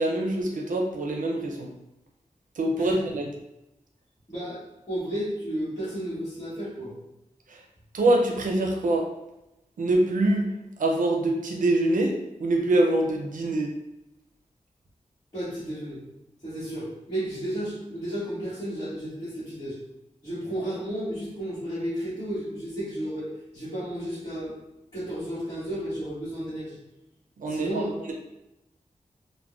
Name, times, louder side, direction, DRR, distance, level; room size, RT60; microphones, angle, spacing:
voice 1, 0.0-1.7 2.6-3.3 7.5-7.6 7.9-9.1 9.8-10.5 10.8-13.7 27.4-28.1, right 1 dB, 80° right, 0 dB, 0.4 m, -24 dB
voice 2, 4.3-6.9 15.3-16.0 16.4-19.8 20.2-24.5 24.9-26.8 27.5-27.9, right 1 dB, 30° left, -14 dB, 1.2 m, -33 dB
3.5 x 2.1 x 2.4 m, 0.93 s
wide cardioid pair, 100°, 14 cm